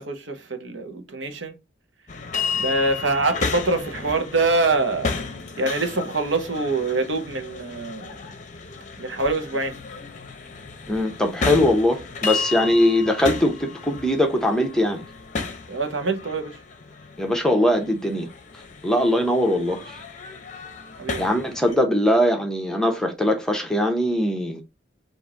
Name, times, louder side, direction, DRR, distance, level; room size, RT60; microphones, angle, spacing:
voice 1, 0.0-1.6 2.5-5.1 5.6-8.2 9.0-9.8 15.7-16.6 21.0-21.3, right 3 dB, 80° right, 0.9 m, -25 dB
sound 1, 2.1-21.8, left 5 dB, 40° left, 0.7 m, -33 dB
voice 2, 10.9-15.0 17.2-18.3 18.8-20.0 21.2-24.6, left 1 dB, 5° left, 0.8 m, -21 dB
4.8 x 2.6 x 3.7 m
head